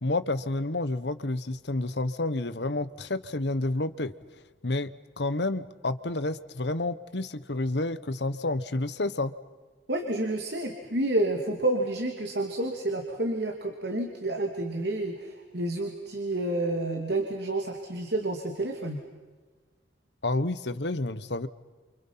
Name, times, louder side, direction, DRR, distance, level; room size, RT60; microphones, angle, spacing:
voice 1, 0.0-4.1 4.6-4.9 5.2-9.3 20.2-21.5, left 2 dB, 70° left, 14 dB, 1.2 m, -29 dB
voice 2, 9.9-19.0, right 2 dB, 65° right, 3 dB, 2.7 m, -29 dB
30.0 x 28.0 x 5.8 m, 1.3 s
head